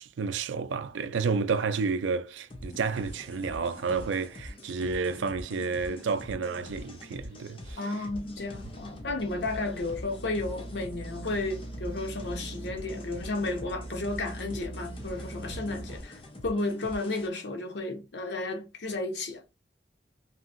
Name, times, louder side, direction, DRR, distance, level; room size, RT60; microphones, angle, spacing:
voice 1, 0.0-7.8, right 4 dB, 85° right, 0.4 m, -30 dB
sound 1, 2.5-17.3, left 1 dB, 30° left, 0.6 m, -45 dB
voice 2, 7.8-19.4, left 2 dB, 65° left, 0.8 m, -33 dB
sound 2, 8.2-16.0, right 1 dB, 20° right, 0.8 m, -42 dB
2.8 x 2.6 x 2.5 m
head